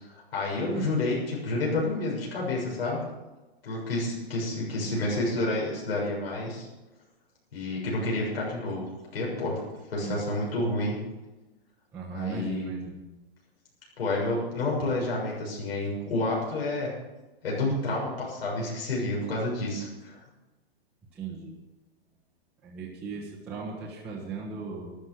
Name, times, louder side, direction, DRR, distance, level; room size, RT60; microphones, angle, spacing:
voice 1, 0.3-3.0 3.6-6.7 7.5-8.8 9.1-9.6 9.9-11.0 12.1-12.7 14.0-16.9 17.4-20.2, left 2 dB, 70° left, -4 dB, 7.0 m, -29 dB
voice 2, 11.9-13.0 21.1-21.6 22.6-25.0, right 5 dB, 5° right, -8 dB, 1.1 m, -36 dB
13.5 x 12.5 x 6.4 m, 1.1 s
hypercardioid pair, 175°, 32 cm